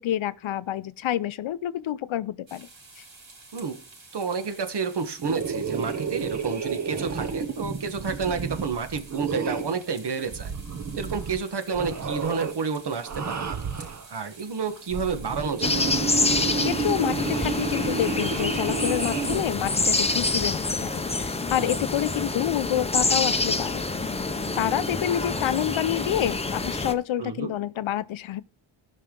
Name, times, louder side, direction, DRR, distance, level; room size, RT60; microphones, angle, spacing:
voice 1, 0.0-2.7 3.0-3.1 16.6-23.9 24.6-28.4, left 12 dB, 75° left, 0.6 m, -28 dB
sound 1, 2.5-22.3, right 3 dB, 70° right, 4.9 m, -49 dB
voice 2, 4.1-10.5 10.9-16.1 27.2-27.5, right 5 dB, 55° right, 1.3 m, -30 dB
sound 2, 5.2-9.8 10.3-11.4 11.7-12.6 13.0-14.1 14.8-19.4, right 5 dB, 35° right, 0.9 m, -31 dB
sound 3, 15.6-26.9, left 3 dB, 15° left, 0.6 m, -27 dB
16.0 x 5.7 x 3.8 m
wide cardioid pair, 160°, 48 cm